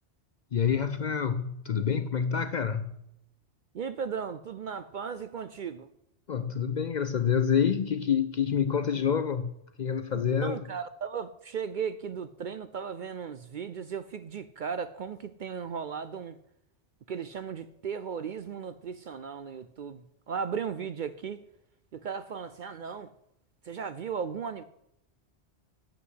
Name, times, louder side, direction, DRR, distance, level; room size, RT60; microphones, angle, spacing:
voice 1, 0.5-3.0 6.3-10.6, left 7 dB, 55° left, 0.5 m, -27 dB
voice 2, 3.7-5.9 10.4-16.4 17.1-21.4 21.9-23.1 23.6-24.6, right 6 dB, 60° right, 0.5 m, -36 dB
8.3 x 7.7 x 8.0 m
omnidirectional pair, 1.2 m